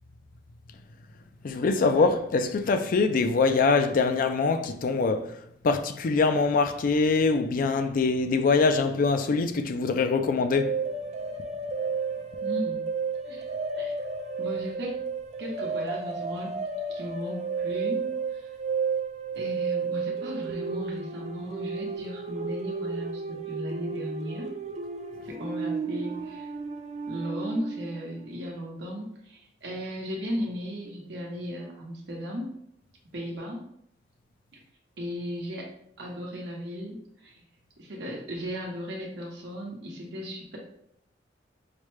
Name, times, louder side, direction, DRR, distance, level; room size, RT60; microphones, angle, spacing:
voice 1, 1.4-5.3 5.6-10.7, left 4 dB, 50° left, 0.4 m, -23 dB
sound 1, 10.6-28.0, right 5 dB, 40° right, 0.4 m, -32 dB
voice 2, 12.4-12.9 13.2-13.4 13.8-14.0 14.4-15.0 15.4-16.6 16.9-18.5 19.4-24.5 25.2-26.5 27.1-32.5 33.1-33.6 35.0-35.7 36.0-37.4 37.8-40.6, equal, 70° right, 0.9 m, -36 dB
4.9 x 2.1 x 3.1 m
head